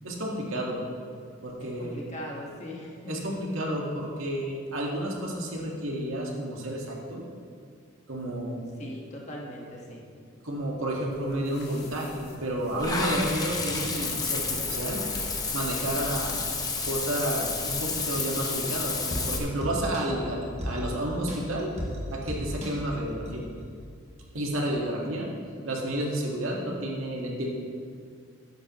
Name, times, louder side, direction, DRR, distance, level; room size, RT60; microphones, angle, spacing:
voice 1, 0.0-0.8 1.4-2.0 3.1-7.2 8.1-8.6 10.4-15.0 15.5-16.4 16.9-21.7 22.1-23.4 24.3-25.3 25.7-27.5, right 1 dB, 85° right, -2 dB, 1.9 m, -31 dB
voice 2, 1.6-3.4 8.8-10.0, left 1 dB, 35° left, -2 dB, 1.6 m, -40 dB
sound 1, 11.1-19.2, left 2 dB, 50° left, 1.4 m, -45 dB
Water / Bathtub (filling or washing), 12.8-19.4, left 4 dB, 20° left, 0.9 m, -31 dB
sound 2, 18.9-23.9 24.3-24.4, equal, 30° right, 1.9 m, -36 dB
13.0 x 10.5 x 3.1 m, 2.2 s
head